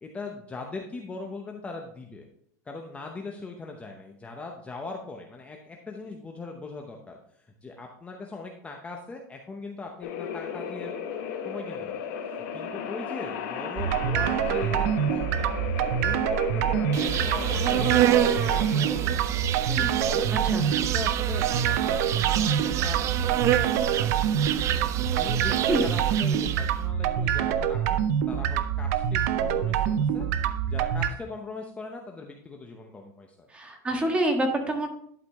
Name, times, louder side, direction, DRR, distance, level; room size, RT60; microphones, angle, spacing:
voice 1, 0.0-2.3 2.7-10.9 11.4-12.0 12.5-15.6 16.0-19.3 19.6-23.6 24.0-24.2 25.1-30.3 30.7-33.5, left 3 dB, 15° left, 2 dB, 0.8 m, -40 dB
sound 1, 10.0-24.6, left 7 dB, 75° left, 1.7 m, -35 dB
sound 2, 13.8-31.1, right 9 dB, 65° right, 0.7 m, -26 dB
Insect, 16.9-26.8, right 12 dB, 35° right, 0.4 m, -28 dB
voice 2, 19.7-20.0 20.3-20.6 24.5-24.6 25.7-25.8 26.3-26.4 29.9-30.0 33.5-34.9, right 1 dB, 10° right, 3 dB, 1.5 m, -28 dB
11.5 x 4.9 x 3.5 m, 0.67 s
supercardioid pair, 145°, 9 cm